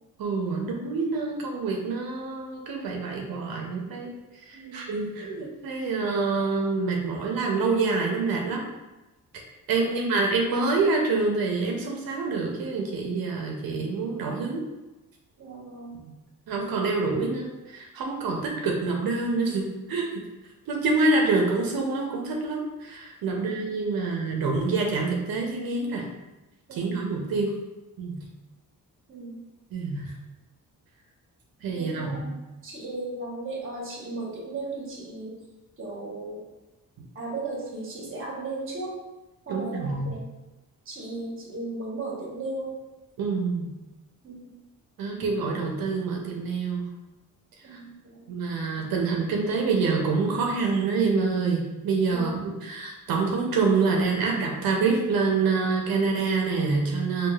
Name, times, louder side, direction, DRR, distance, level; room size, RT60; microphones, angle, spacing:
voice 1, 0.2-4.1 4.5-8.6 9.7-14.6 16.5-20.2 20.7-26.1 26.7-27.5 28.0-28.2 29.7-30.1 31.6-32.3 39.5-40.1 43.2-43.7 45.0-46.9 47.7-47.8 48.3-57.3, right 4 dB, 90° right, 0 dB, 0.6 m, -26 dB
voice 2, 4.5-4.9 9.8-10.0 15.4-16.0 23.3-23.6 24.0-24.1 26.7-27.0 29.1-29.4 31.7-35.3 35.8-36.4 37.1-38.9 39.5-40.2 40.8-42.7 44.2-44.5 47.6-48.3 52.1-52.3, right 2 dB, 35° right, -3 dB, 1.0 m, -36 dB
4.6 x 2.3 x 2.3 m, 1.0 s
wide cardioid pair, 145°, 34 cm